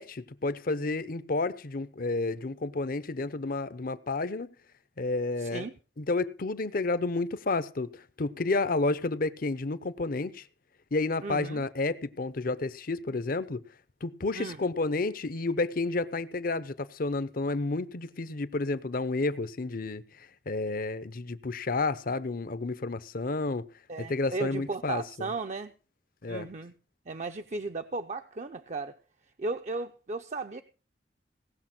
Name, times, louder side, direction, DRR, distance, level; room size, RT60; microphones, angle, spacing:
voice 1, 0.0-4.5 5.0-5.7 6.0-10.5 10.9-13.6 14.0-23.7 24.0-25.3 26.2-26.5, left 3 dB, 55° left, 0.8 m, -31 dB
voice 2, 5.4-5.7 11.2-11.6 14.3-14.6 23.9-25.7 26.3-26.7 27.1-29.0 29.4-30.6, right 3 dB, 40° right, 0.7 m, -35 dB
18.0 x 7.0 x 5.9 m
head